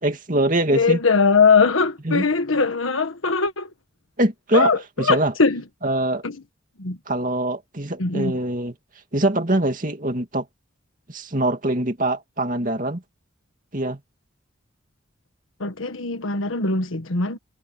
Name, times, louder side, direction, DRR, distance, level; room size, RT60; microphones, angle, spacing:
voice 1, 0.0-1.0 2.0-2.2 4.2-4.7 5.0-5.3 5.8-6.3 7.1-8.7 9.1-10.5 11.1-13.0 13.7-14.0, right 1 dB, 40° right, 2.6 m, -23 dB
voice 2, 0.7-3.7 4.5-5.6 6.2-6.4 6.8-7.0 8.0-8.3 15.6-17.4, left 4 dB, 85° left, 1.5 m, -20 dB
head